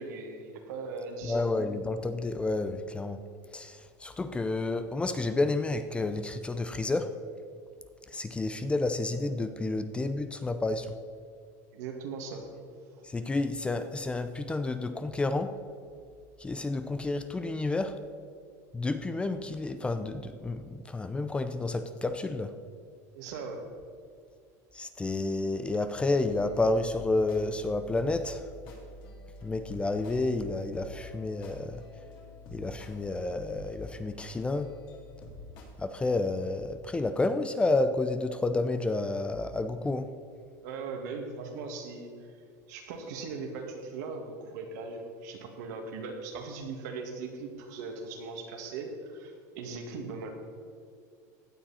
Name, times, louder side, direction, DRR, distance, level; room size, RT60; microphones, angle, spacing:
voice 1, 0.0-1.6 11.7-12.5 23.1-23.7 40.6-42.1 42.7-50.3, right 4 dB, 75° right, 2 dB, 2.2 m, -39 dB
voice 2, 1.2-3.2 3.5-7.1 8.1-10.9 13.0-15.5 16.4-18.0 18.7-22.5 24.7-28.5 29.4-31.8 32.5-34.7 35.8-40.1, left 2 dB, 10° left, 10 dB, 0.5 m, -30 dB
sound 1, 26.1-35.6, left 2 dB, 55° left, 3.5 m, -47 dB
16.0 x 9.7 x 4.3 m, 2.3 s
supercardioid pair, 135°, 9 cm